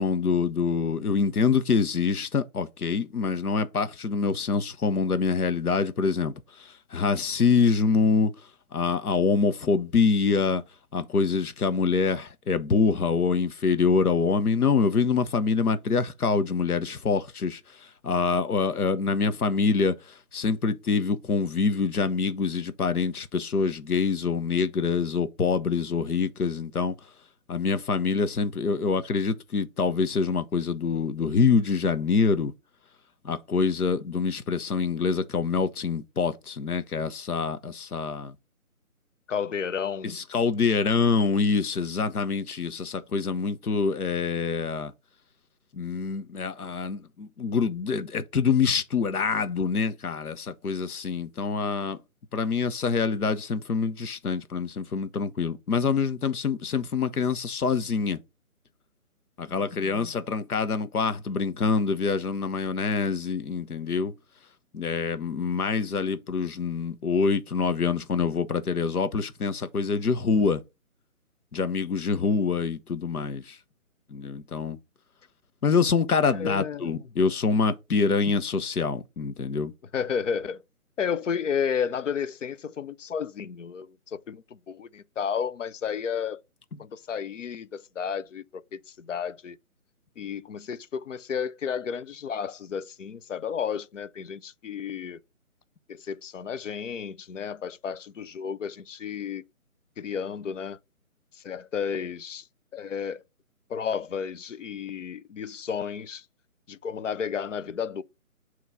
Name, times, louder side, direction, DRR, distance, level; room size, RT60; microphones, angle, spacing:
voice 1, 0.0-8.3 8.7-10.6 10.9-26.9 27.5-32.5 33.2-38.3 40.0-44.9 45.7-52.0 52.3-58.2 59.4-64.1 64.7-70.6 71.5-73.6 74.1-74.8 75.6-79.7, left 5 dB, 85° left, 0.9 m, -25 dB
voice 2, 39.3-40.2 59.5-60.0 76.3-76.9 79.9-80.6 81.0-86.4 86.8-89.6 90.2-95.2 95.9-99.4 100.0-100.8 101.3-102.5 102.7-103.2 103.7-106.2 106.7-108.0, left 7 dB, 60° left, 0.5 m, -32 dB
5.9 x 3.1 x 5.3 m
figure-of-eight pair, 155°, 43 cm